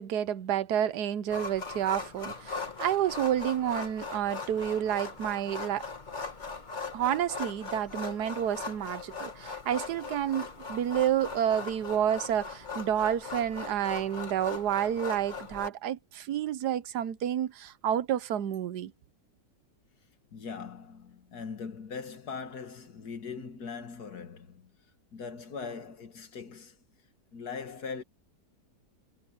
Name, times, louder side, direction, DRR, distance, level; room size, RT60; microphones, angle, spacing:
voice 1, 0.0-5.9 6.9-18.9, right 10 dB, 75° right, 1.3 m, -30 dB
sound 1, 1.3-15.7, left 4 dB, 30° left, 1.5 m, -40 dB
voice 2, 20.3-24.7 25.1-26.8 27.3-28.0, left 5 dB, 70° left, 2.2 m, -40 dB
omnidirectional pair, 1.8 m